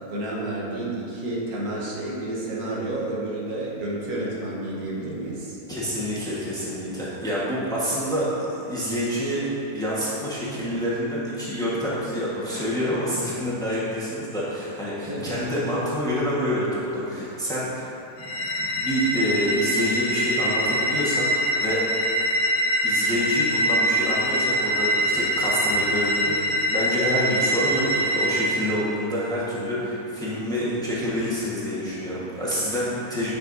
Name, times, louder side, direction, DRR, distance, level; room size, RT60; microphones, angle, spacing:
voice 1, 0.1-5.6 15.1-15.3, right 1 dB, 75° right, -5 dB, 1.7 m, -30 dB
voice 2, 5.7-9.5 9.7-17.9 18.2-18.3 18.6-21.3 21.6-21.8 22.8-33.3, equal, 5° left, -9 dB, 1.2 m, -27 dB
sound 1, 18.2-28.7, equal, 60° left, 1.1 m, -24 dB
9.8 x 5.6 x 2.7 m, 2.9 s
omnidirectional pair, 1.6 m